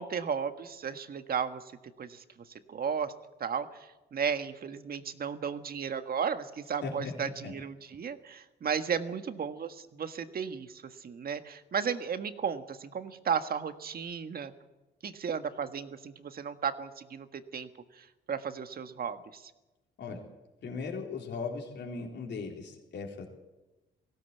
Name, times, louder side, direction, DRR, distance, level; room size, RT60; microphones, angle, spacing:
voice 1, 0.0-1.6 2.0-2.2 2.7-3.1 3.4-3.7 4.1-14.5 15.0-17.7 18.3-19.4, right 7 dB, 50° right, 9 dB, 1.6 m, -34 dB
voice 2, 6.8-7.1 7.4-7.6 20.0-20.2 20.6-23.3, left 4 dB, 60° left, 0 dB, 3.8 m, -38 dB
19.0 x 16.5 x 8.4 m, 1.1 s
cardioid pair, 90°, 20 cm